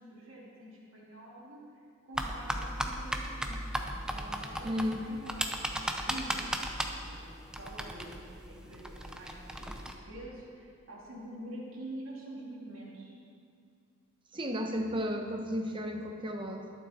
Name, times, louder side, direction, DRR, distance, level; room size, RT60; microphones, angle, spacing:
voice 1, 0.0-3.6 3.9-5.8 6.0-6.4 6.8-8.2 8.5-13.1, right 1 dB, 65° right, -4 dB, 2.6 m, -46 dB
sound 1, 2.2-9.9, right 1 dB, 5° right, 0.6 m, -36 dB
voice 2, 4.6-5.1 14.3-16.7, equal, 20° right, 4 dB, 0.9 m, -33 dB
21.0 x 7.4 x 4.3 m, 2.5 s
head